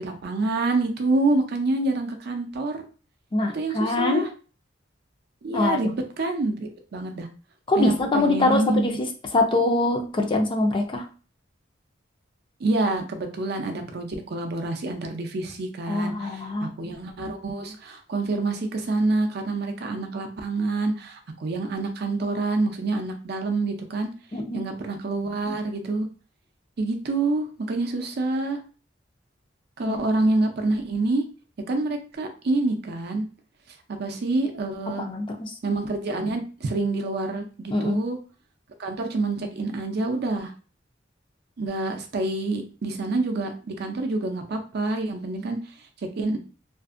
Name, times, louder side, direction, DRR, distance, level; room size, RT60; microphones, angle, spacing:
voice 1, 0.0-2.8 3.5-4.3 5.4-7.3 7.8-8.9 12.6-24.1 24.5-26.1 26.8-28.6 29.8-31.2 31.7-33.2 33.9-35.1 35.6-38.2 38.8-40.5 41.6-45.6 46.2-46.4, right 2 dB, 60° right, 5 dB, 0.5 m, -27 dB
voice 2, 3.3-4.3 5.5-5.8 7.7-9.1 9.3-11.1 15.9-16.7 24.3-24.6 29.9-30.0 35.1-35.5 37.7-38.0, left 2 dB, 25° left, 3 dB, 0.4 m, -23 dB
2.5 x 2.5 x 2.4 m, 0.36 s
head